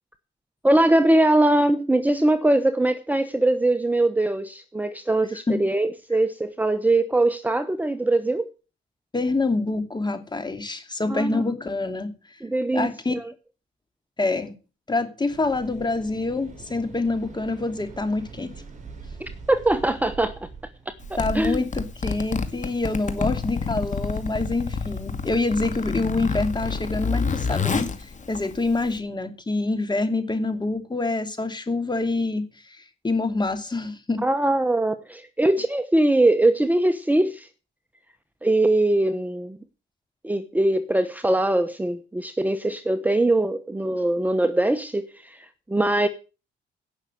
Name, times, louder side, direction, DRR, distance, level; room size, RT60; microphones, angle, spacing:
voice 1, 0.6-8.5 11.1-11.4 12.4-12.9 13.1-13.2 19.2-20.5 20.9-21.0 21.3-21.6 34.2-37.5 38.4-39.6 40.2-46.1, right 1 dB, 10° right, 1.0 m, -22 dB
voice 2, 9.1-12.1 12.7-13.2 14.2-14.5 14.9-18.5 21.2-34.2, left 3 dB, 20° left, 2.7 m, -26 dB
Waves surf, 15.3-25.5, right 5 dB, 40° right, 6.0 m, -44 dB
Zipper (clothing), 21.0-29.0, left 4 dB, 40° left, 2.2 m, -29 dB
16.5 x 6.5 x 7.7 m
cardioid pair, 90°, 20 cm